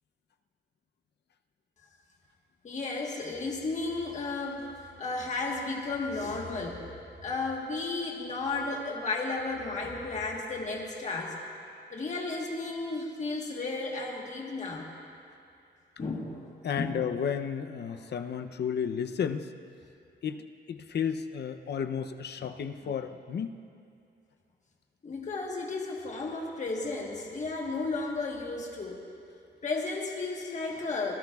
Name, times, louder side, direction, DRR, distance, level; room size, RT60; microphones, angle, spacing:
voice 1, 2.6-4.6 5.0-6.8 7.2-11.3 11.9-14.9 16.0-17.0 17.9-18.0 20.8-20.9 22.8-22.9 25.0-29.0 29.6-31.2, left 3 dB, 40° left, -1 dB, 1.4 m, -33 dB
voice 2, 16.6-19.5 20.2-20.4 20.7-23.5, left 7 dB, 60° left, 8 dB, 0.6 m, -32 dB
25.5 x 17.0 x 2.4 m, 2.5 s
wide cardioid pair, 170°, 19 cm